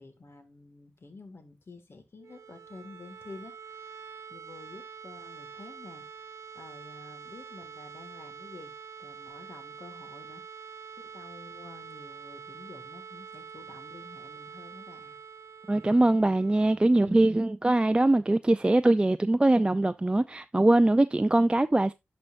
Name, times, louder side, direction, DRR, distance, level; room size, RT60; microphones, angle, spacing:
voice 1, 0.0-4.0 4.3-6.3 6.5-8.7 9.0-15.2 16.9-17.4, left 3 dB, 55° left, 1.8 m, -50 dB
sound 1, 2.1-17.9, right 6 dB, 80° right, 0.6 m, -46 dB
voice 2, 15.7-21.9, right 2 dB, 20° right, 0.3 m, -22 dB
11.0 x 4.4 x 2.5 m
cardioid pair, 40°, 5 cm